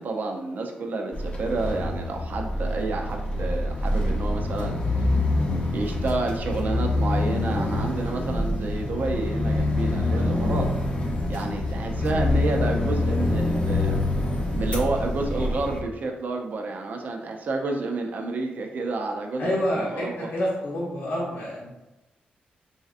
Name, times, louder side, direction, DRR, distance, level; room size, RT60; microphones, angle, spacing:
voice 1, 0.0-5.1 5.7-10.7 11.3-14.0 14.6-20.3, right 3 dB, 55° right, 3 dB, 0.5 m, -30 dB
sound 1, 1.1-15.8, left 2 dB, 35° left, 0.6 m, -26 dB
voice 2, 19.4-21.7, equal, 75° left, -5 dB, 0.7 m, -28 dB
3.1 x 2.8 x 2.4 m, 1.0 s
cardioid pair, 80°, 3 cm